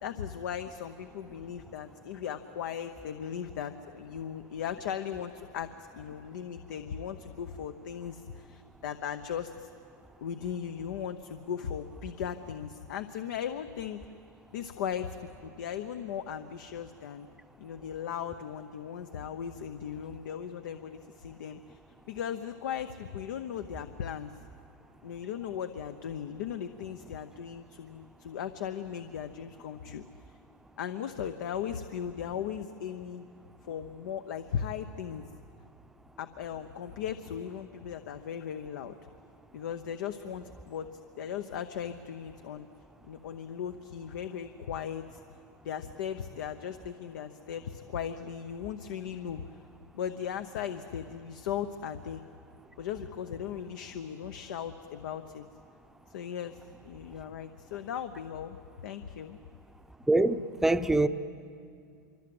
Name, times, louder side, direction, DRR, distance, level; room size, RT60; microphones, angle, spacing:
voice 1, 0.0-9.7 10.2-14.0 14.5-15.1 15.4-17.3 17.6-21.8 22.1-24.3 25.0-30.0 30.8-33.2 33.7-35.3 36.2-38.9 39.5-40.9 41.1-42.7 43.0-45.2 45.6-49.4 49.9-52.2 52.8-55.5 56.1-56.6 56.8-59.4, left 8 dB, 75° left, 1.0 m, -37 dB
voice 2, 60.1-61.1, right 2 dB, 5° right, 0.7 m, -24 dB
26.0 x 24.5 x 7.9 m
supercardioid pair, 130°, 10 cm